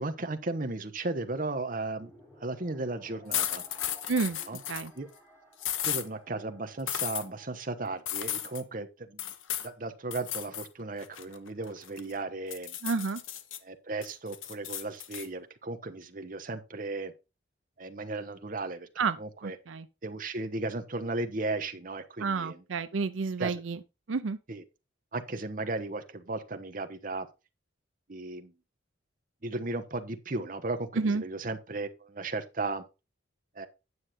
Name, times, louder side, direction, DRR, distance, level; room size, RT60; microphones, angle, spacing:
voice 1, 0.0-2.1 2.4-3.6 4.5-4.6 4.9-5.1 5.9-9.3 9.6-12.8 13.6-17.1 17.8-18.9 19.2-19.6 20.0-22.6 23.4-23.6 24.5-24.6 25.1-27.3 28.1-28.5 29.4-32.8 33.5-33.7, right 2 dB, 45° right, 1.0 m, -35 dB
sound 1, 1.8-8.4, equal, 10° left, 3.6 m, -56 dB
sound 2, 3.3-4.9 5.6-6.1 6.9-7.2 8.1-8.6 9.2-9.7 10.1-10.7 11.0-12.1 12.5-13.6 14.0-15.3, left 11 dB, 90° left, 0.9 m, -34 dB
voice 2, 4.1-4.4 4.7-4.9 12.8-13.2 19.0-19.2 19.4-19.9 22.2-23.8 24.1-24.4 31.0-31.2, right 4 dB, 85° right, 0.5 m, -30 dB
9.6 x 6.5 x 4.2 m
head